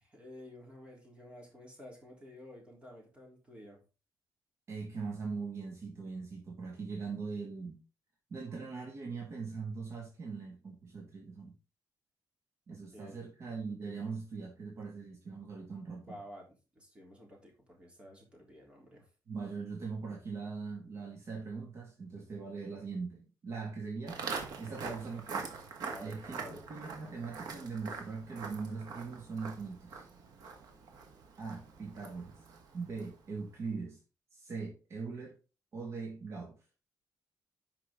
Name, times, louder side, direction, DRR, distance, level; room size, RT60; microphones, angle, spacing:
voice 1, 0.0-3.8 12.9-13.2 16.1-16.5 16.8-19.1 24.7-25.0 25.9-26.6, equal, 15° right, 3.5 m, -51 dB
voice 2, 4.7-7.8 8.3-11.5 12.7-16.2 19.3-24.3 24.6-25.4 26.0-30.1 31.4-32.4 32.7-34.0 34.3-35.4 35.7-36.6, right 4 dB, 40° right, 2.0 m, -41 dB
Walk footsteps, 24.1-33.3, right 5 dB, 70° right, 2.0 m, -44 dB
10.5 x 5.7 x 3.8 m
wide cardioid pair, 175°, 7 cm